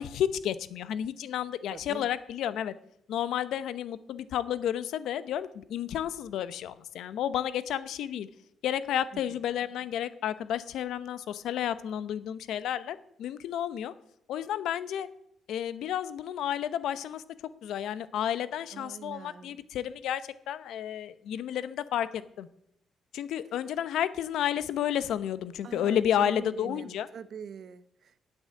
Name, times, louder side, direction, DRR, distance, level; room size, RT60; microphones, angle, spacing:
voice 1, 0.0-2.7 3.1-8.3 8.6-13.9 14.3-15.1 15.5-17.2 17.6-20.2 20.5-22.5 23.1-27.1, left 10 dB, 75° left, 14 dB, 0.8 m, -31 dB
voice 2, 1.7-2.1 9.1-9.4 18.7-19.6 25.6-28.2, right 7 dB, 50° right, 15 dB, 0.8 m, -44 dB
9.2 x 8.8 x 9.7 m, 0.75 s
cardioid pair, 130°, 0 cm